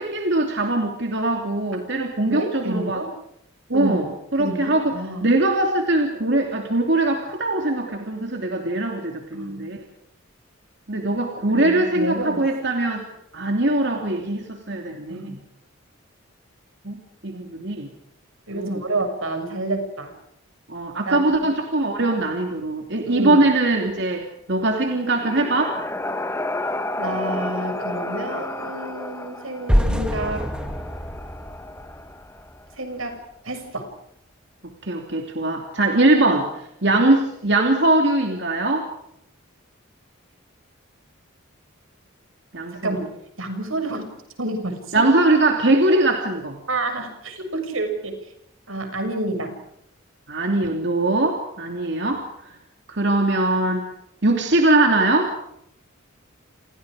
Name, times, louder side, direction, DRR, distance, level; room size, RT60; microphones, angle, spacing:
voice 1, 0.0-3.0 3.7-4.9 5.2-9.8 10.9-13.1 13.3-15.4 16.8-17.9 18.5-18.8 20.7-25.7 34.8-36.5 36.8-38.8 42.5-42.9 44.9-46.6 50.3-52.5 52.9-53.9 54.2-55.3, right 2 dB, 55° right, 2 dB, 3.0 m, -21 dB
voice 2, 2.3-3.1 3.7-4.1 4.4-5.3 9.3-9.7 11.5-12.4 15.1-15.3 17.3-17.4 18.5-20.1 21.1-21.5 23.1-23.5 27.0-30.5 32.8-33.9 36.9-37.0 42.8-43.1 43.4-44.1 44.4-45.1 46.7-48.2 48.7-49.6, right 2 dB, 80° right, 6 dB, 6.8 m, -29 dB
sound 1, 24.7-32.6, left 2 dB, 15° left, 1.5 m, -32 dB
sound 2, 29.7-32.7, equal, 5° right, 2.4 m, -25 dB
29.5 x 28.5 x 5.1 m, 0.76 s
head